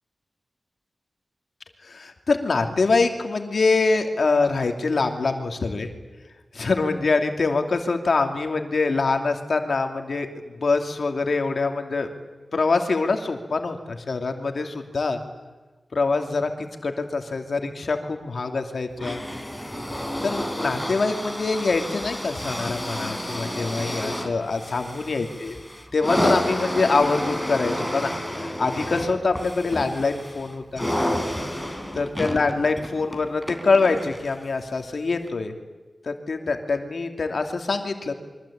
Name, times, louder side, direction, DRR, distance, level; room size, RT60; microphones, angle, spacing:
voice 1, 1.8-5.9 6.5-10.3 10.6-12.1 12.5-15.2 15.9-19.2 20.2-25.6 25.9-30.8 32.0-35.5 36.0-38.1, left 3 dB, 65° left, 5 dB, 2.7 m, -24 dB
sound 1, 19.0-34.4 35.3-35.4, left 1 dB, 5° left, 3.9 m, -30 dB
28.0 x 24.0 x 8.8 m, 1.3 s
wide cardioid pair, 105°, 0 cm